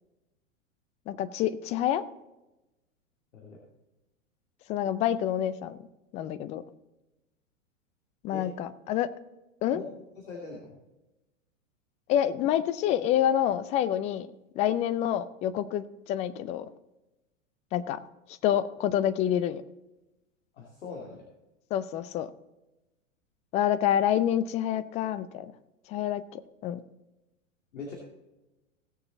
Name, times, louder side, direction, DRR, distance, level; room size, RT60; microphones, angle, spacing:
voice 1, 1.1-2.0 4.7-5.8 6.1-6.6 8.2-9.1 9.6-9.8 12.1-14.3 14.6-16.7 17.7-18.0 18.4-19.6 21.7-22.3 23.5-25.5 25.9-26.8, left 10 dB, 20° left, 14 dB, 0.3 m, -27 dB
voice 2, 10.3-10.8 20.6-21.2 27.7-27.9, left 4 dB, 70° left, -1 dB, 2.5 m, -41 dB
17.0 x 6.7 x 3.9 m, 1.0 s
figure-of-eight pair, 100°, 39 cm